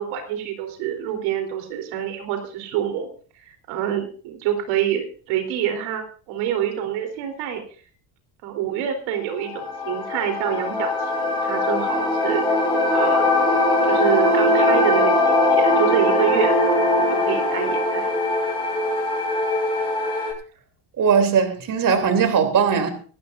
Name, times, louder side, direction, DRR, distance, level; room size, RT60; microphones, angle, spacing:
voice 1, 0.0-3.1 3.7-7.6 8.4-12.6 12.9-13.2 13.9-16.5 17.0-18.1, right 9 dB, 85° right, 5 dB, 3.8 m, -26 dB
sound 1, 9.4-20.3, left 2 dB, 10° left, 6.3 m, -21 dB
voice 2, 21.0-22.9, right 6 dB, 45° right, 6 dB, 3.1 m, -19 dB
26.0 x 12.0 x 2.6 m, 0.41 s
cardioid pair, 115°, 47 cm